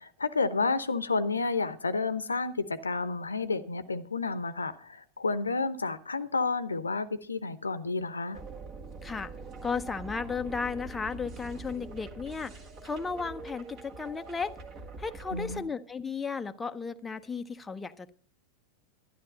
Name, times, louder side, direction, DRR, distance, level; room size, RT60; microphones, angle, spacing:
voice 1, 0.0-8.4 15.3-15.7, left 4 dB, 75° left, 14 dB, 0.8 m, -30 dB
sound 1, 8.3-15.6, right 3 dB, 35° right, 1.9 m, -44 dB
voice 2, 9.0-9.3 9.6-14.5 15.0-18.1, left 5 dB, 10° left, 8 dB, 0.7 m, -34 dB
12.5 x 11.0 x 5.3 m, 0.42 s
figure-of-eight pair, 90°, 0 cm